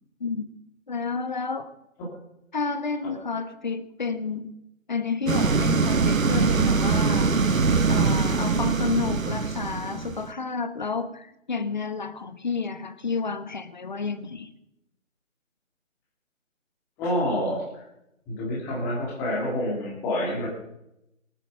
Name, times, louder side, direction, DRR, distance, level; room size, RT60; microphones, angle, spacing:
voice 1, 0.9-1.7 2.5-4.5 4.9-7.3 7.9-14.5, left 5 dB, 35° left, 10 dB, 1.4 m, -30 dB
sound 1, 5.3-10.3, right 4 dB, 90° right, 1.4 m, -23 dB
voice 2, 17.0-17.7 18.3-20.5, left 1 dB, 5° left, -3 dB, 1.9 m, -27 dB
22.0 x 9.2 x 6.7 m, 0.85 s
figure-of-eight pair, 170°, 39 cm